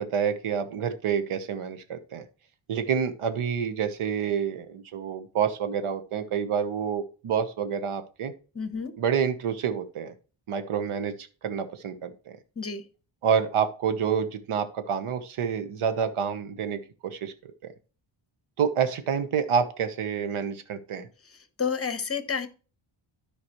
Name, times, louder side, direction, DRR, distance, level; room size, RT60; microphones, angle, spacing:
voice 1, 0.0-2.2 2.7-8.3 9.0-10.1 10.5-12.4 13.2-17.3 18.6-21.1, right 7 dB, 75° right, 10 dB, 1.2 m, -28 dB
voice 2, 8.5-8.9 12.6-12.8 21.6-22.5, left 6 dB, 30° left, 11 dB, 1.1 m, -29 dB
12.5 x 5.2 x 3.1 m, 0.35 s
wide cardioid pair, 120°, 50 cm